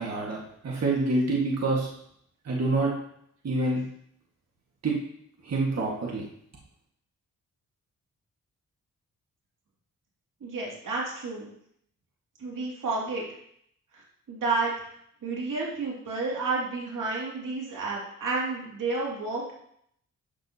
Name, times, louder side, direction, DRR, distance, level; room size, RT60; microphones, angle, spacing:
voice 1, 0.0-1.9 2.4-2.9 3.4-3.8 4.8-5.0 5.4-6.2, right 2 dB, 50° right, -3 dB, 1.8 m, -26 dB
voice 2, 10.4-11.5 12.4-13.2 13.9-14.0 14.3-14.7 15.2-19.5, right 3 dB, 70° right, -4 dB, 2.6 m, -30 dB
11.5 x 6.0 x 2.9 m, 0.70 s
cardioid pair, 80°, 33 cm